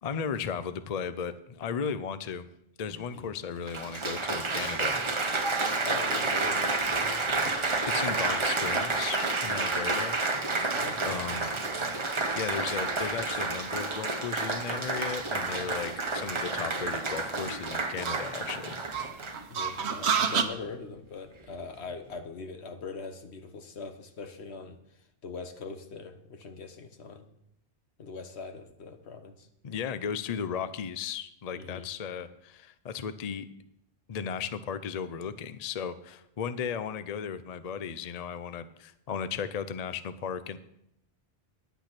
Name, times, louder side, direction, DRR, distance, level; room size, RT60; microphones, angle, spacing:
voice 1, 0.0-2.4 2.8-4.9 7.2-10.2 11.1-11.5 12.3-18.8 29.6-33.5 34.1-40.6, left 7 dB, 45° left, 13 dB, 0.6 m, -35 dB
Applause, 2.9-3.0 3.7-19.6 20.3-20.7, right 3 dB, 30° right, 0.8 m, -30 dB
voice 2, 5.8-6.7 10.7-11.2 11.8-11.9 19.5-24.8 25.2-27.2 28.0-29.5 31.5-31.9, left 4 dB, 80° left, 7 dB, 1.4 m, -41 dB
sound 1, 6.8-20.4, right 6 dB, 80° right, 1.1 m, -36 dB
10.5 x 9.2 x 5.9 m, 0.77 s
omnidirectional pair, 1.1 m